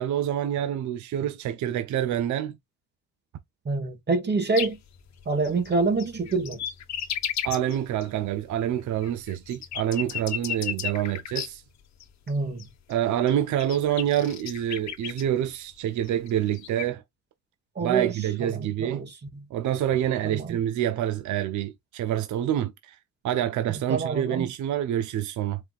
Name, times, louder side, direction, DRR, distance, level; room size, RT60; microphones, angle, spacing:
voice 1, 0.0-2.6 7.4-11.6 12.9-17.0 17.8-19.1 19.5-23.0 23.2-25.6, right 11 dB, 70° right, 0.7 m, -27 dB
voice 2, 3.6-4.8 5.2-6.6 12.3-12.7 17.7-19.4 20.2-20.6 23.7-24.5, right 3 dB, 35° right, 1.4 m, -27 dB
sound 1, 4.6-4.7 4.9-8.1 8.4-11.5 12.0-12.3 12.6-12.7 12.9-13.0 13.3-15.2 16.1-16.8, left 9 dB, 65° left, 1.0 m, -33 dB
4.7 x 3.7 x 2.3 m
cardioid pair, 90°, 30 cm